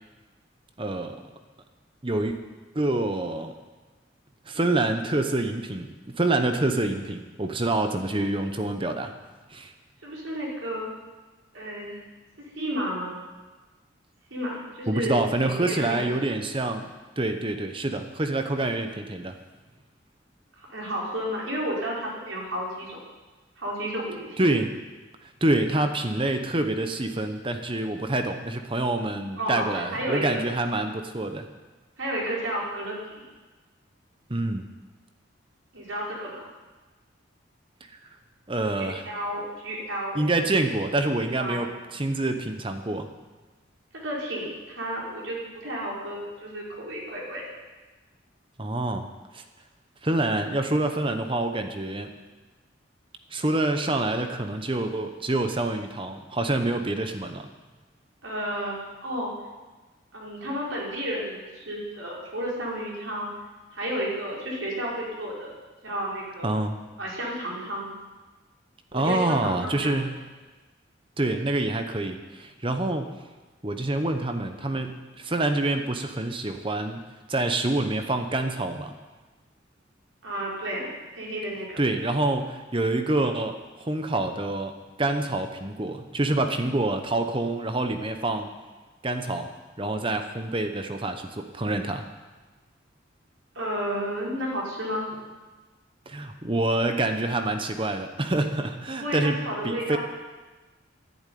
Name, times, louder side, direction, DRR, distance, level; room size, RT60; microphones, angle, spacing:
voice 1, 0.8-1.2 2.0-2.4 2.7-3.5 4.5-9.1 9.5-9.7 14.9-16.9 17.2-19.3 24.4-24.8 25.2-31.5 34.3-34.7 38.5-39.0 40.1-43.1 48.6-49.1 49.3-49.4 50.0-52.1 53.3-57.5 66.4-66.8 68.9-70.1 71.2-73.1 73.6-78.9 81.8-84.7 85.0-88.5 89.0-89.5 89.8-92.1 96.1-99.4 99.6-100.0, right 2 dB, 25° right, 7 dB, 1.0 m, -27 dB
voice 2, 10.0-10.9 11.5-12.0 12.6-13.1 14.3-16.0 20.7-23.0 23.6-24.3 29.4-30.4 32.0-33.2 35.7-36.5 38.7-40.5 41.2-41.7 43.9-47.4 58.2-58.8 59.0-59.3 60.1-63.3 63.7-65.6 65.8-66.5 67.0-67.9 68.9-70.1 80.2-81.8 93.5-95.2 99.0-100.0, equal, 85° right, -4 dB, 4.9 m, -32 dB
11.5 x 10.5 x 9.3 m, 1.2 s
head